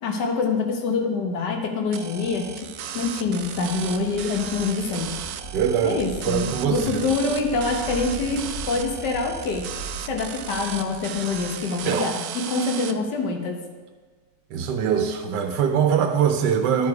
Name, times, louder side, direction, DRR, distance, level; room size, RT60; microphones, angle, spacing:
voice 1, 0.0-2.7 2.9-5.1 5.8-6.4 6.7-9.6 10.0-13.6, left 4 dB, 80° left, 3 dB, 1.6 m, -25 dB
sound 1, 1.9-12.9, right 9 dB, 70° right, 1.0 m, -36 dB
sound 2, 2.1-11.9, right 1 dB, 45° left, 1.6 m, -40 dB
voice 2, 5.5-6.0 6.3-7.1 11.8-12.1 14.5-16.9, right 7 dB, 90° right, 5 dB, 1.3 m, -22 dB
11.5 x 4.8 x 4.7 m, 1.5 s
omnidirectional pair, 1.8 m